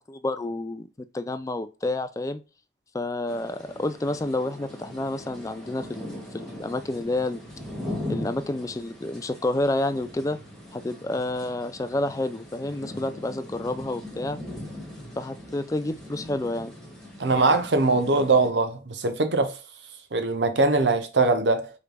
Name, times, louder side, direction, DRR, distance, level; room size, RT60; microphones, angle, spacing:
voice 1, 0.1-0.9 1.1-2.4 2.9-7.4 8.1-10.4 10.7-14.4 15.2-16.7, left 2 dB, 20° left, 0.4 m, -29 dB
sound 1, 3.3-18.5, left 1 dB, 5° left, 1.2 m, -40 dB
voice 2, 17.2-19.6 20.1-21.7, right 3 dB, 80° right, 0.8 m, -22 dB
5.0 x 3.3 x 2.3 m
head